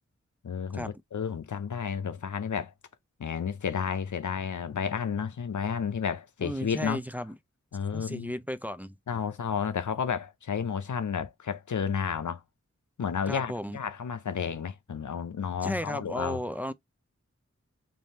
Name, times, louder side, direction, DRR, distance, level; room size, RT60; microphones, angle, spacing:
voice 1, 0.4-2.7 3.2-7.0 7.7-8.3 9.1-12.4 13.0-16.4, left 7 dB, 85° left, 0.6 m, -31 dB
voice 2, 6.4-7.3 7.9-8.9 13.3-13.8 15.6-16.7, equal, 5° right, 0.4 m, -34 dB
3.5 x 2.6 x 4.2 m
wide cardioid pair, 65°, 29 cm